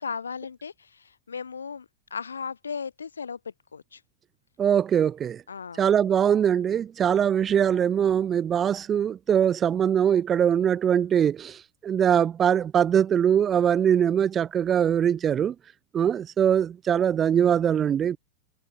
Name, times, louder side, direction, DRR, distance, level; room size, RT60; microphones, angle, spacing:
voice 1, 0.0-3.4 3.7-4.0 5.5-5.8, left 6 dB, 75° left, 3.4 m, -36 dB
voice 2, 4.6-5.4 5.8-15.6 15.9-18.2, right 8 dB, 25° right, 2.0 m, -22 dB
figure-of-eight pair, 90°, 0 cm